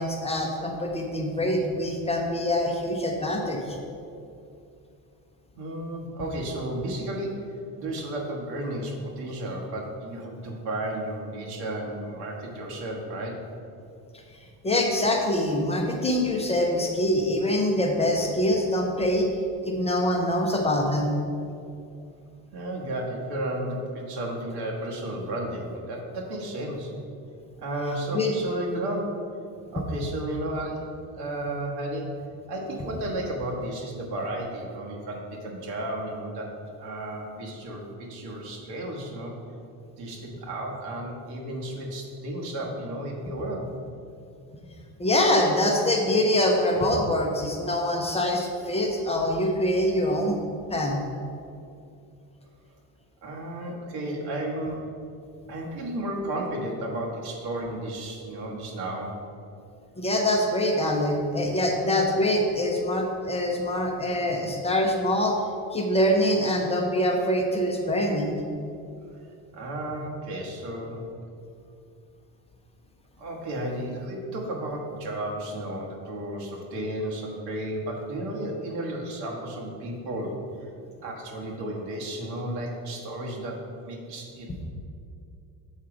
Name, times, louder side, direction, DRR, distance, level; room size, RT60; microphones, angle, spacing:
voice 1, 0.0-3.8 14.6-19.3 19.6-21.1 28.1-28.3 45.0-50.4 50.7-51.0 60.0-65.4 65.7-68.3, left 1 dB, 15° left, 1 dB, 0.5 m, -24 dB
voice 2, 5.6-13.4 22.5-26.9 27.6-29.2 29.7-32.1 32.5-36.5 36.8-39.3 40.0-43.7 53.2-54.9 55.5-59.2 69.5-71.0 73.2-80.4 81.0-84.7, right 1 dB, 85° right, -2 dB, 1.6 m, -33 dB
7.3 x 4.5 x 4.9 m, 2.6 s
cardioid pair, 160°, 38 cm